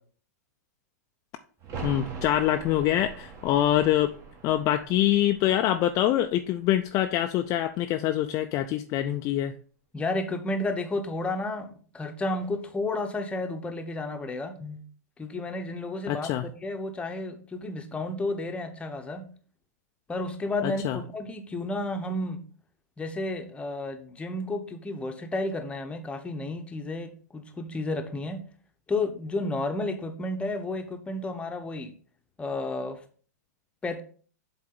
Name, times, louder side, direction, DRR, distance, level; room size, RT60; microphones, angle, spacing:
sound 1, 1.6-7.2 7.5-7.6, right 5 dB, 35° right, 1.5 m, -42 dB
voice 1, 1.8-4.1 4.4-9.5 16.1-16.5 20.6-21.0, left 12 dB, 35° left, 6 dB, 0.5 m, -25 dB
voice 2, 9.9-14.8 15.2-19.2 20.1-22.4 23.0-28.4 28.9-31.9 32.4-33.0 33.8-34.0, left 2 dB, 10° left, 6 dB, 0.9 m, -32 dB
7.5 x 4.0 x 3.8 m, 0.42 s
hypercardioid pair, 120°, 9 cm